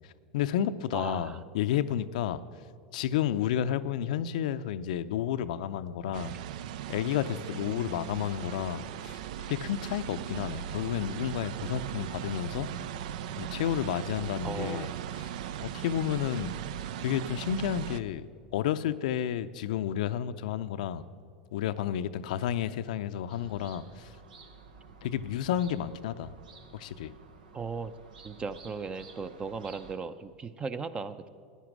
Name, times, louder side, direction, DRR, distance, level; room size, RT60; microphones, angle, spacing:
voice 1, 0.3-2.4 2.9-6.3 6.9-12.7 13.4-14.9 15.6-16.5 17.0-21.0 21.5-24.1 25.0-26.3 26.7-27.1, left 10 dB, 75° left, 12 dB, 0.5 m, -31 dB
voice 2, 0.9-1.4 14.4-15.0 27.5-27.9 28.2-31.3, right 5 dB, 25° right, 13 dB, 0.6 m, -37 dB
sound 1, 6.1-18.0, right 10 dB, 70° right, 0.4 m, -38 dB
sound 2, 23.3-30.0, right 4 dB, 90° right, 1.2 m, -53 dB
13.5 x 10.0 x 6.1 m, 2.1 s
hypercardioid pair, 105°, 4 cm